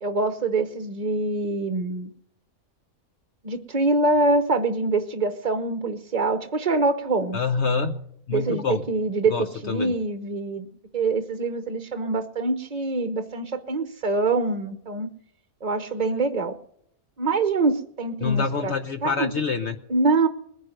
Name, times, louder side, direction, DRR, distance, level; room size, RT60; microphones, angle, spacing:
voice 1, 0.0-2.1 3.4-7.4 8.3-10.7 10.9-15.1 15.6-16.6 17.2-18.7 19.0-19.3 19.9-20.3, right 3 dB, 35° right, 9 dB, 0.8 m, -24 dB
voice 2, 7.3-8.0 8.3-8.8 9.3-10.0 18.2-19.8, left 5 dB, 55° left, 7 dB, 1.1 m, -26 dB
20.5 x 10.5 x 6.5 m, 0.71 s
omnidirectional pair, 1.5 m